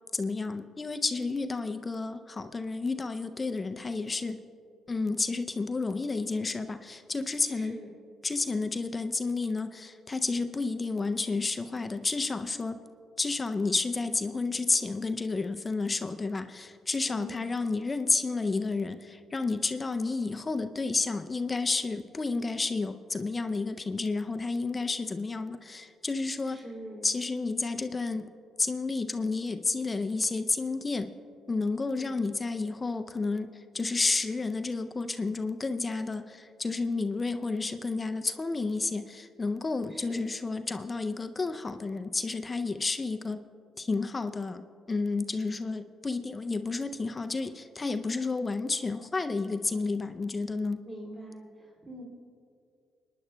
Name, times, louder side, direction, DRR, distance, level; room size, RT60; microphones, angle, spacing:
voice 1, 0.1-4.4 4.9-7.8 8.2-12.8 13.2-26.6 27.0-28.3 28.6-31.1 31.5-43.4 43.8-44.6 44.9-50.8, left 3 dB, 25° left, 8 dB, 0.4 m, -31 dB
voice 2, 7.5-8.0 17.0-17.5 26.4-27.1 31.9-32.2 39.9-40.2 50.8-52.0, right 1 dB, 20° right, -6 dB, 2.5 m, -44 dB
30.0 x 9.9 x 2.2 m, 2.4 s
cardioid pair, 90°, 0 cm